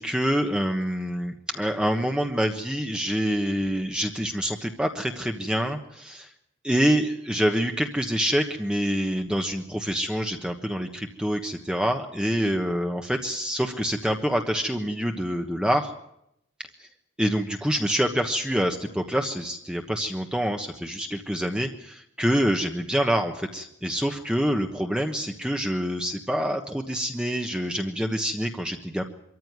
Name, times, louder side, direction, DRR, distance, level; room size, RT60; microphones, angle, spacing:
voice 1, 0.0-6.3 6.6-15.9 16.8-16.9 17.2-29.0, equal, 5° right, 4 dB, 1.2 m, -26 dB
24.5 x 14.0 x 9.6 m, 0.78 s
head